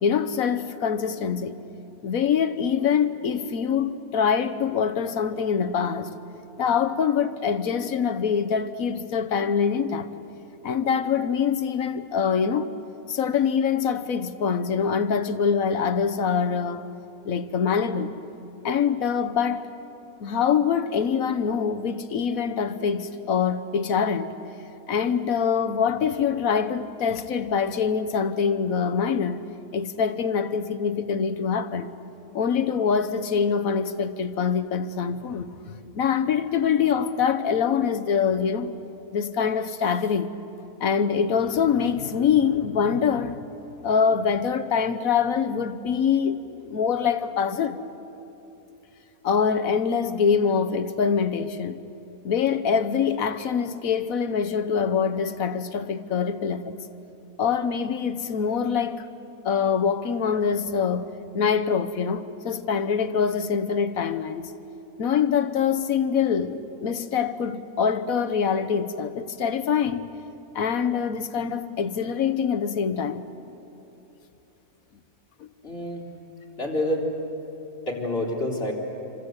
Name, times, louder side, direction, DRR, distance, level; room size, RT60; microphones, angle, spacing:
voice 1, 0.0-1.6 2.0-6.1 6.6-10.1 10.6-12.7 13.1-16.9 17.2-18.1 18.6-19.7 20.2-24.3 24.9-29.4 29.7-31.9 32.3-35.5 35.9-38.7 39.1-40.3 40.8-43.4 43.8-47.8 49.2-51.8 52.2-56.7 57.4-59.0 59.4-61.1 61.3-64.5 65.0-70.1 70.5-73.3 75.4-75.5, left 6 dB, 70° left, 1.4 m, -24 dB
voice 2, 75.6-76.1 76.6-77.1 77.9-78.7, left 1 dB, 40° left, 4.2 m, -27 dB
27.5 x 26.0 x 8.1 m
omnidirectional pair, 1.6 m